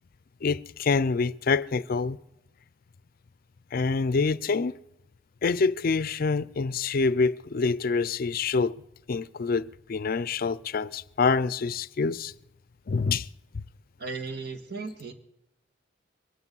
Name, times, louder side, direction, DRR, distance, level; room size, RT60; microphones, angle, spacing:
voice 1, 0.4-2.2 3.7-4.8 5.4-8.7 9.1-12.3 12.9-13.3 13.5-13.6, left 4 dB, 55° left, 0.5 m, -26 dB
voice 2, 14.0-15.1, right 4 dB, 60° right, 1.7 m, -36 dB
23.0 x 9.8 x 5.5 m
head